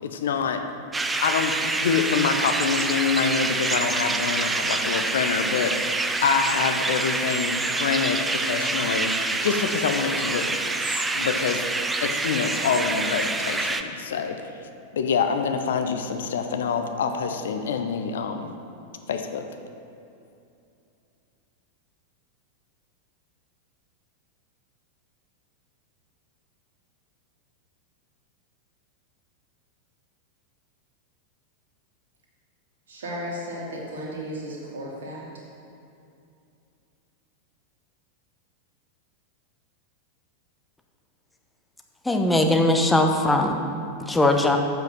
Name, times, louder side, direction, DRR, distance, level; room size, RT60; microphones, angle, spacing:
voice 1, 0.0-0.6 1.2-11.6 12.0-14.4 14.9-18.5 19.1-19.4, left 6 dB, 60° left, 6 dB, 0.7 m, -26 dB
sound 1, 0.9-13.8, right 3 dB, 10° right, 0.5 m, -26 dB
voice 2, 32.9-35.2, equal, 60° right, -4 dB, 2.2 m, -34 dB
voice 3, 42.0-43.6 44.1-44.6, left 1 dB, 5° left, 3 dB, 0.9 m, -20 dB
7.6 x 5.9 x 7.3 m, 2.6 s
figure-of-eight pair, 90°, 0 cm